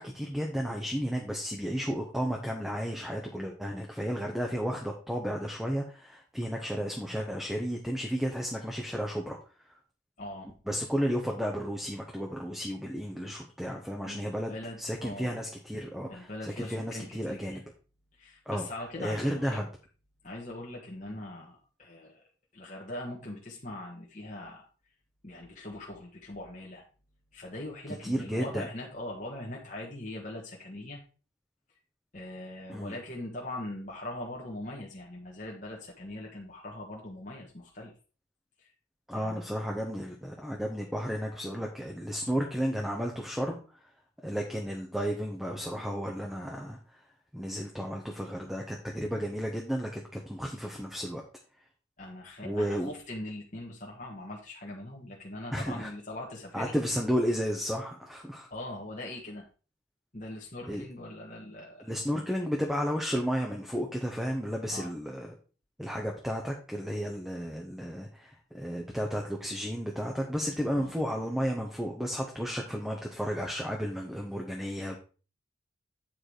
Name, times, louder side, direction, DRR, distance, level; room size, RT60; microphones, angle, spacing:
voice 1, 0.0-9.4 9.6-9.8 10.7-17.6 18.5-18.7 19.0-19.7 28.0-28.6 32.7-32.9 39.1-43.6 44.2-47.0 47.3-51.2 52.4-52.9 55.5-55.9 56.5-58.5 60.7-60.8 61.8-65.3 65.8-75.0, equal, ahead, 0 dB, 1.0 m, -33 dB
voice 2, 10.2-10.5 14.0-15.3 16.1-17.6 18.1-19.6 20.2-22.2 22.5-24.7 25.2-26.8 27.3-31.0 32.1-37.9 38.6-38.7 39.1-39.8 52.0-56.7 58.5-59.4 60.1-61.9 64.7-64.9 70.7-70.9, left 1 dB, 40° left, -3 dB, 1.6 m, -41 dB
9.0 x 4.8 x 4.8 m, 0.36 s
head